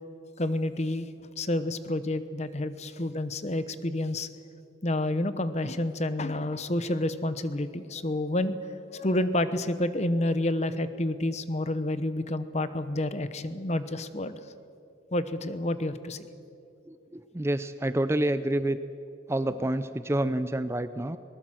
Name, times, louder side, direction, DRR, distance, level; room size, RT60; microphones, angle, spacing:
voice 1, 0.4-1.1 1.4-4.3 4.8-14.3 15.1-16.3, left 1 dB, 35° left, 12 dB, 0.9 m, -29 dB
voice 2, 16.9-18.8 19.3-21.2, right 1 dB, 15° right, 12 dB, 0.4 m, -28 dB
21.5 x 19.0 x 7.6 m, 2.6 s
head